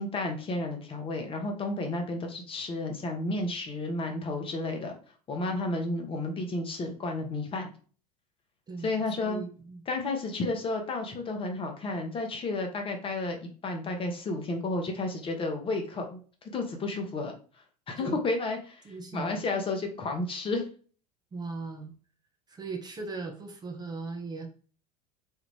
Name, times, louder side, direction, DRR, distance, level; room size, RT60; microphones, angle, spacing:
voice 1, 0.0-4.9 5.3-7.7 8.8-9.4 9.9-13.4 13.6-16.2 16.5-17.4 17.9-18.8 19.1-20.6, left 2 dB, 25° left, 3 dB, 0.8 m, -32 dB
voice 2, 8.7-9.8 18.0-18.2 18.8-19.4 21.3-21.9 22.5-24.5, right 3 dB, 20° right, 3 dB, 0.7 m, -39 dB
3.2 x 2.4 x 3.2 m, 0.40 s
figure-of-eight pair, 80°, 20 cm